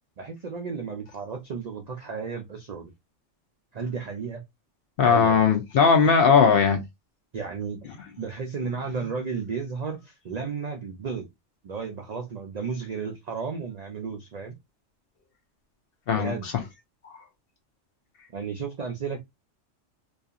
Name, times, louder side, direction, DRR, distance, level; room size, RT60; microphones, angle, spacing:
voice 1, 0.2-2.9 3.7-4.4 5.1-5.4 7.3-7.9 8.2-11.3 11.6-14.6 16.1-16.5 18.3-19.2, right 5 dB, 75° right, 0.3 m, -33 dB
voice 2, 5.0-6.8 16.1-16.3, left 6 dB, 60° left, 0.6 m, -18 dB
2.7 x 2.4 x 2.3 m
omnidirectional pair, 1.3 m